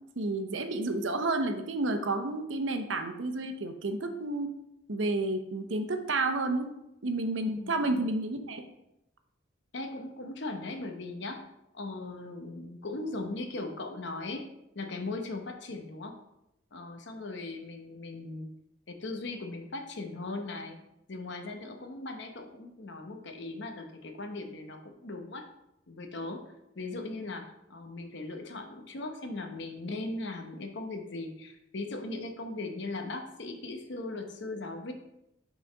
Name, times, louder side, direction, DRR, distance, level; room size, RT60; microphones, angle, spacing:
voice 1, 0.2-4.5 4.9-6.7 7.0-8.6, right 2 dB, 70° right, 7 dB, 0.8 m, -30 dB
voice 2, 7.4-8.0 9.7-11.4 11.7-14.4 14.7-16.1 16.7-18.5 18.9-20.8 21.1-25.4 25.9-26.4 26.8-27.4 27.7-34.9, left 2 dB, 60° left, 4 dB, 0.9 m, -38 dB
5.9 x 4.1 x 5.2 m, 0.84 s
head